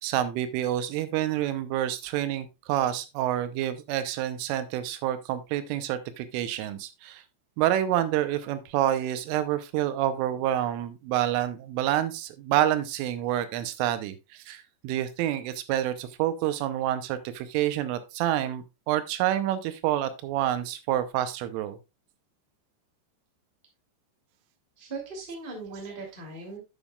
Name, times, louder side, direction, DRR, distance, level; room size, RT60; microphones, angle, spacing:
voice 1, 0.0-7.2 7.6-21.8, right 12 dB, 85° right, 11 dB, 3.3 m, -28 dB
voice 2, 24.8-26.6, right 3 dB, 15° right, 0 dB, 1.9 m, -39 dB
11.0 x 7.2 x 2.4 m, 0.25 s
omnidirectional pair, 5.7 m